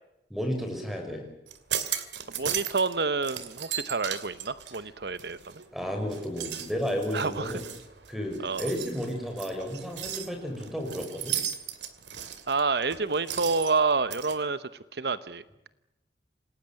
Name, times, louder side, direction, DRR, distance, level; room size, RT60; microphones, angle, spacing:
voice 1, 0.3-1.2 5.7-7.6 8.1-11.4, equal, ahead, 4 dB, 6.0 m, -32 dB
sound 1, 1.5-2.9 3.2-5.7 6.1-14.4, right 10 dB, 90° right, 2.5 m, -36 dB
voice 2, 2.4-5.4 7.1-7.6 8.4-8.7 12.5-15.4, right 4 dB, 70° right, 14 dB, 0.9 m, -28 dB
28.0 x 19.0 x 7.7 m, 0.92 s
head